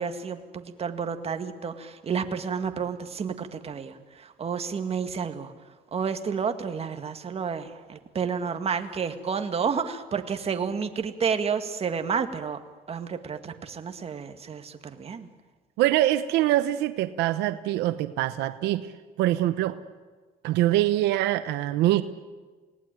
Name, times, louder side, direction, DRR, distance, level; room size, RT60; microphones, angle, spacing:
voice 1, 0.0-5.5 5.9-12.6 12.9-15.3, right 6 dB, 35° right, 7 dB, 2.0 m, -30 dB
voice 2, 15.8-18.9 19.2-19.8 20.4-22.0, right 14 dB, 90° right, 12 dB, 1.0 m, -24 dB
29.0 x 18.5 x 9.2 m, 1.4 s
cardioid pair, 110°, 17 cm